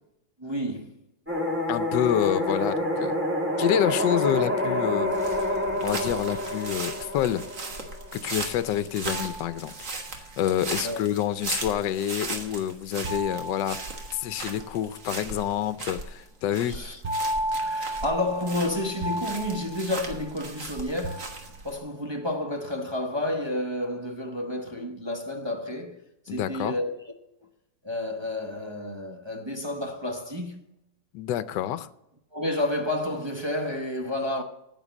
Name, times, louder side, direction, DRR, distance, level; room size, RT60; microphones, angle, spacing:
voice 1, 0.4-1.0 10.8-11.0 16.7-17.0 17.5-27.1 27.8-30.7 32.3-34.4, left 1 dB, 25° right, 0.6 m, -30 dB
sound 1, 1.3-8.2, left 1 dB, 5° right, 1.9 m, -28 dB
voice 2, 1.7-3.1 3.6-5.2 5.8-7.4 8.1-9.9 10.4-13.8 14.1-16.8 26.3-26.7 31.1-31.9, left 11 dB, 75° left, 1.3 m, -27 dB
sound 2, 5.1-21.8, right 3 dB, 45° right, 1.7 m, -38 dB
sound 3, 9.0-10.3 13.0-14.7 17.0-20.6 21.0-22.0, right 1 dB, 85° right, 0.5 m, -34 dB
9.3 x 8.1 x 7.2 m
omnidirectional pair, 2.0 m